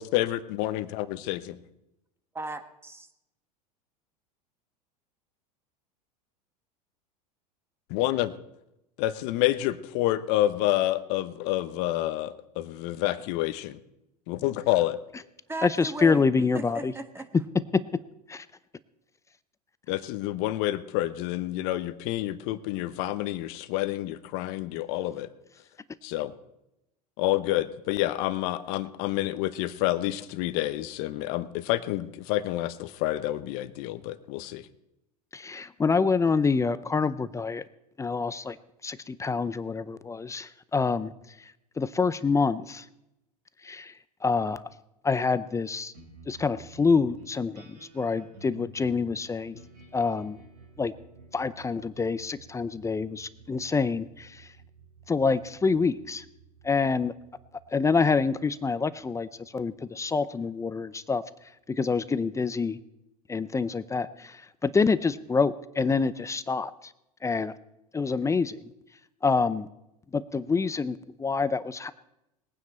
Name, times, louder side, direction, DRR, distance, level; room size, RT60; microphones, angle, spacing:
voice 1, 0.0-1.6 7.9-8.3 9.0-13.8 14.3-15.0 19.9-25.3 26.0-26.3 27.2-34.6, left 15 dB, 55° left, 13 dB, 1.0 m, -28 dB
voice 2, 2.3-3.1 15.5-16.3 16.5-17.3, right 2 dB, 10° right, 7 dB, 1.5 m, -36 dB
voice 3, 15.6-16.9 18.3-18.5 35.3-37.6 38.0-38.6 38.8-41.1 41.4-42.9 43.6-43.9 44.2-44.6 45.0-45.9 46.3-49.6 49.9-50.4 50.8-50.9 51.3-54.5 55.1-56.2 56.6-57.1 57.7-59.3 59.5-61.2 61.7-62.8 63.3-66.9 67.2-67.5 67.9-68.6 69.2-69.7 70.1-71.9, left 4 dB, 15° left, 15 dB, 0.6 m, -26 dB
sound 1, 45.9-60.6, right 4 dB, 85° right, 4.6 m, -53 dB
20.5 x 9.3 x 4.4 m, 0.87 s
hypercardioid pair, 90°, 20 cm